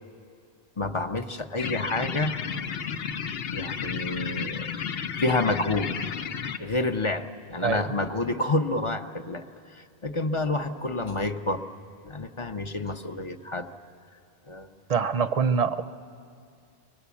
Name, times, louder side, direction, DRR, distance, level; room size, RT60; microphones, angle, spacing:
voice 1, 0.8-2.3 3.5-4.7 5.2-5.9 6.6-9.4 9.7-11.6 12.0-13.7 14.5-14.7 15.4-15.5, left 2 dB, 35° left, 7 dB, 0.7 m, -28 dB
sound 1, 1.6-6.6, left 7 dB, 75° left, 1.0 m, -32 dB
voice 2, 14.9-15.8, right 6 dB, 45° right, 12 dB, 0.6 m, -24 dB
24.5 x 18.5 x 8.4 m, 2.3 s
omnidirectional pair, 1.0 m